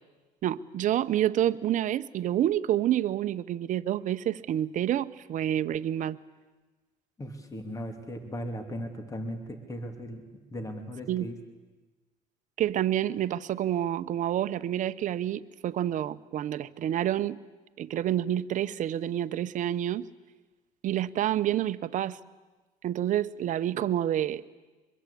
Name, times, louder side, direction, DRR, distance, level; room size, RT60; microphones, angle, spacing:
voice 1, 0.4-6.2 11.1-11.3 12.6-17.4 17.8-20.1 20.8-22.2 22.8-24.4, right 11 dB, 55° right, 13 dB, 0.9 m, -28 dB
voice 2, 7.2-10.2 10.5-11.4, equal, 20° left, 6 dB, 2.8 m, -37 dB
24.0 x 22.0 x 8.5 m, 1.3 s
cardioid pair, 115°, 15 cm